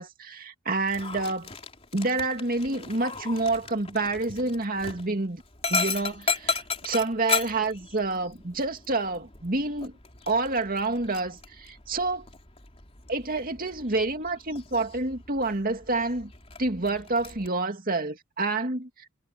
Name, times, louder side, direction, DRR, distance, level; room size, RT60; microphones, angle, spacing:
voice 1, 0.0-1.5 1.9-5.4 5.7-9.9 10.3-12.3 13.1-16.3 16.6-18.9, right 3 dB, 45° right, 2.4 m, -28 dB
Dog, 0.8-17.5, left 4 dB, 30° left, 3.8 m, -36 dB
head